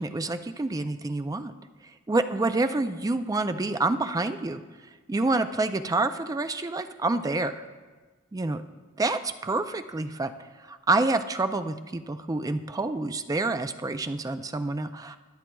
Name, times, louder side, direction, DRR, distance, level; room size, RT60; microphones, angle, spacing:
voice 1, 0.0-1.5 2.1-4.6 5.1-7.6 8.3-8.6 9.0-10.3 10.6-15.2, right 2 dB, 15° right, 9 dB, 0.4 m, -27 dB
21.0 x 7.3 x 2.3 m, 1.3 s
head